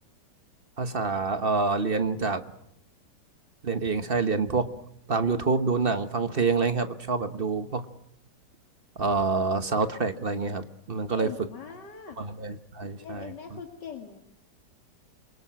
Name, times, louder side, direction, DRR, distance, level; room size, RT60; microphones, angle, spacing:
voice 1, 0.8-2.4 3.6-4.7 5.1-7.9 9.0-11.3 12.2-13.3, right 4 dB, 35° right, 10 dB, 1.1 m, -27 dB
voice 2, 11.1-12.2 13.0-14.2, left 7 dB, 75° left, 4 dB, 2.6 m, -41 dB
27.5 x 23.0 x 7.5 m, 0.77 s
omnidirectional pair, 1.9 m